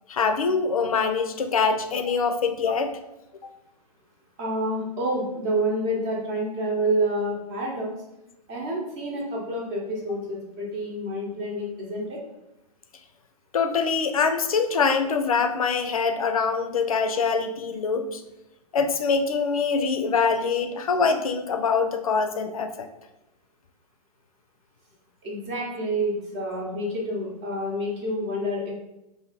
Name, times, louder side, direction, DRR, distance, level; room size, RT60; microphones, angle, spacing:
voice 1, 0.1-2.9 3.4-3.5 13.5-18.2 18.7-22.9, left 5 dB, 60° left, 7 dB, 0.5 m, -24 dB
voice 2, 4.4-7.9 8.5-12.2 25.2-28.7, right 1 dB, 30° right, -3 dB, 0.9 m, -28 dB
2.7 x 2.6 x 4.1 m, 0.91 s
figure-of-eight pair, 110°, 20 cm